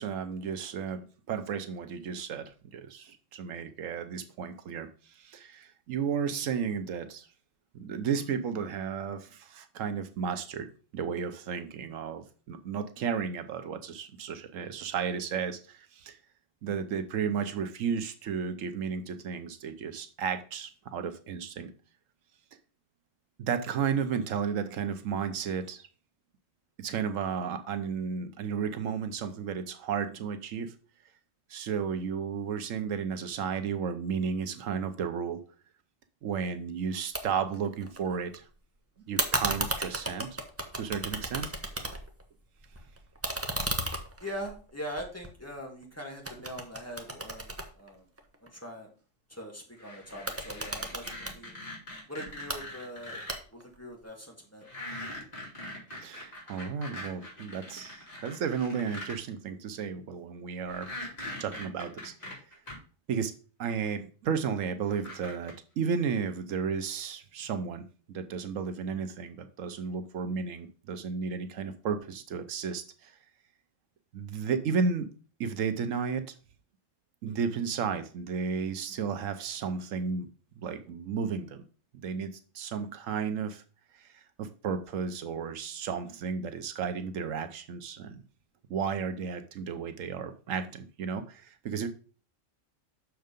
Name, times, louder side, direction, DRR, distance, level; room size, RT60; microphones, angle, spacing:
voice 1, 0.0-7.3 7.7-10.7 10.9-16.2 16.6-21.7 23.4-25.9 26.8-30.7 31.5-35.4 36.2-38.4 39.1-40.4 40.7-41.5 56.0-60.9 61.4-62.4 63.1-63.3 63.6-73.1 74.1-75.1 75.4-76.3 77.2-80.3 80.6-81.6 82.0-83.6 83.9-88.2 88.7-91.9, right 6 dB, 90° right, 9 dB, 1.2 m, -33 dB
sound 1, 37.1-37.2 37.5-38.4 39.2-42.2 42.6-45.8 46.3-48.5 50.1-51.4 52.3-52.6 53.3-53.7, right 1 dB, 15° right, 0.7 m, -34 dB
voice 2, 44.2-48.0 48.4-48.9 49.3-51.6 52.1-53.2 53.5-54.7, equal, 10° left, -1 dB, 1.8 m, -42 dB
sound 2, 49.8-53.4 54.6-59.2 60.7-62.7 63.9-64.0 64.9-65.5, left 1 dB, 30° left, 3.3 m, -42 dB
6.6 x 4.6 x 5.2 m, 0.38 s
omnidirectional pair, 1.3 m